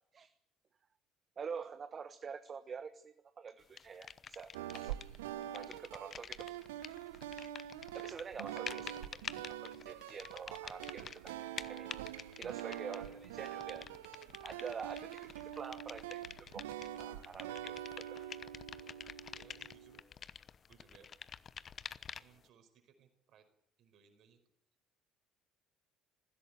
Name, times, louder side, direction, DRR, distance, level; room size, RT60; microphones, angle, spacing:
voice 1, 1.4-5.0 5.5-6.5 6.8-7.0 7.9-9.0 9.5-11.2 11.7-11.9 12.4-14.1 14.4-17.8, right 6 dB, 35° right, 10 dB, 1.3 m, -46 dB
sound 1, 3.8-5.2 5.4-22.5, left 7 dB, 40° left, 0.8 m, -49 dB
sound 2, 4.5-20.0, right 12 dB, 75° right, 0.8 m, -45 dB
voice 2, 19.3-20.0 20.7-21.1 22.2-23.5 23.8-24.4, right 7 dB, 55° right, 6 dB, 4.9 m, -65 dB
20.0 x 16.0 x 9.0 m, 0.77 s
figure-of-eight pair, 55°, 0 cm